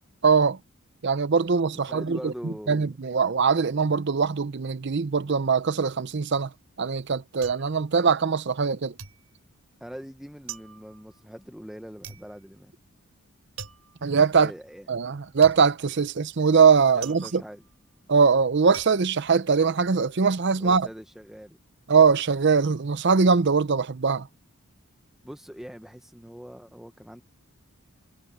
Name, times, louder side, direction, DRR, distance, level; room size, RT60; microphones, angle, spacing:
voice 1, 0.2-0.6 1.0-6.5 6.8-8.9 14.0-14.5 14.9-17.4 18.1-20.9 21.9-24.3, right 5 dB, 50° right, 0.6 m, -22 dB
voice 2, 1.7-2.9 9.8-12.7 14.3-14.9 16.9-17.6 20.6-21.6 25.2-27.2, equal, ahead, 0.7 m, -42 dB
sound 1, 6.7-8.7 9.0-20.1 20.4-21.0, right 8 dB, 85° right, 5.3 m, -45 dB
head